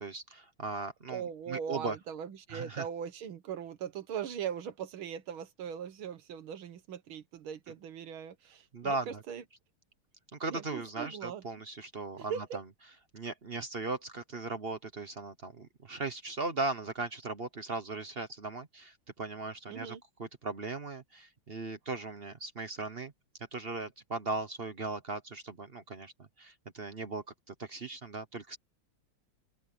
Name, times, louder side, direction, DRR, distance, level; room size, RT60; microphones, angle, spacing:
voice 1, 0.0-2.0 2.5-2.9 8.7-9.2 10.3-12.6 13.1-23.1 23.4-28.6, right 3 dB, 40° right, 0.9 m, -38 dB
voice 2, 1.1-9.4 10.5-11.4 12.2-12.6 19.7-20.0, right 8 dB, 70° right, 2.1 m, -40 dB
open air
omnidirectional pair, 2.4 m